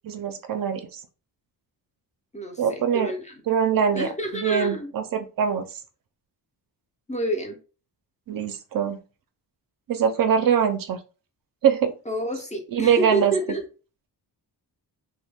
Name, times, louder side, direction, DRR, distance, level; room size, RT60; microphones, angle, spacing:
voice 1, 0.0-1.0 2.6-3.1 3.5-5.8 8.3-9.0 9.9-11.0 11.6-11.9 12.7-13.3, right 7 dB, 55° right, 7 dB, 0.4 m, -23 dB
voice 2, 2.3-3.3 3.9-4.9 7.1-7.6 12.1-13.6, right 1 dB, 15° left, 2 dB, 0.5 m, -29 dB
2.2 x 2.2 x 3.3 m, 0.35 s
wide cardioid pair, 120°, 42 cm